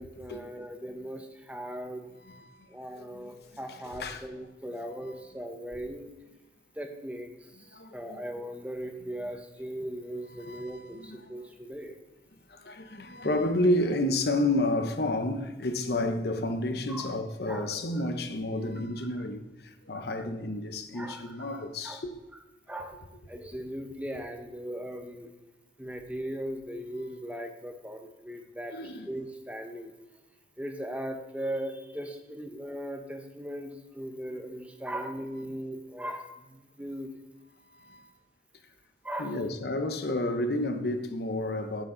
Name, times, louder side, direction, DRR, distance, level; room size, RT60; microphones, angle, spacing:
voice 1, 0.0-2.1 2.7-6.1 6.8-7.3 7.9-12.0 16.9-17.1 17.5-17.7 20.9-22.0 22.7-22.9 23.3-25.3 25.8-28.7 29.1-29.9 30.6-37.1 39.0-39.4, equal, 5° right, 0.8 m, -38 dB
voice 2, 2.2-2.6 2.9-3.3 3.7-4.3 5.1-5.2 7.7-8.2 9.2-9.3 10.3-11.3 12.5-22.1 28.7-29.1 37.7-38.1 39.2-41.8, left 1 dB, 60° left, 0.9 m, -31 dB
11.0 x 7.0 x 3.9 m
head